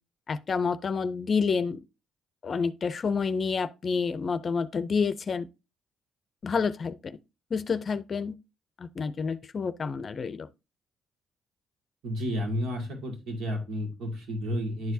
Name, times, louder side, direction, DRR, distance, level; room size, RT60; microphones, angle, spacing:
voice 1, 0.3-1.8 2.4-5.5 6.4-7.2 7.5-8.4 8.8-10.5, left 5 dB, 45° left, 0.5 m, -29 dB
voice 2, 12.0-14.9, equal, 80° right, 2.2 m, -31 dB
10.5 x 4.5 x 2.7 m
cardioid pair, 90°, 0 cm